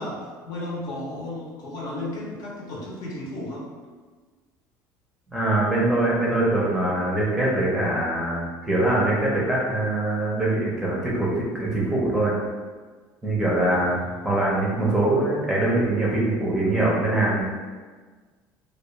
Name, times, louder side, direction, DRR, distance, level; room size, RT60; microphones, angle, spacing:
voice 1, 0.0-3.7 13.6-13.8, left 1 dB, 55° left, -3 dB, 0.7 m, -34 dB
voice 2, 5.3-12.3 13.2-14.0 14.2-17.4, right 2 dB, 5° right, -6 dB, 0.6 m, -23 dB
2.3 x 2.3 x 3.0 m, 1.4 s
cardioid pair, 140°, 8 cm